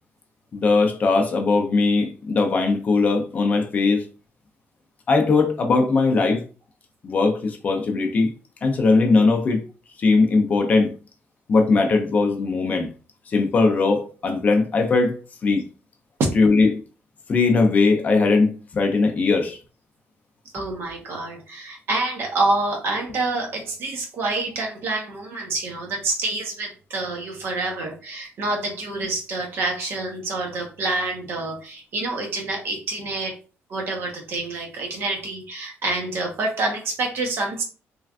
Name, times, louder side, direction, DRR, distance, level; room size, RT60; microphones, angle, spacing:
voice 1, 0.5-4.1 5.1-6.4 7.0-8.3 8.6-9.6 10.0-10.9 11.5-12.9 13.3-15.2 15.4-15.6 16.3-16.8 17.3-19.6, left 3 dB, 35° left, 0.4 m, -19 dB
voice 2, 20.5-33.4 33.7-37.6, right 2 dB, 55° right, 0.8 m, -27 dB
3.2 x 2.3 x 2.4 m
cardioid pair, 165°, 5 cm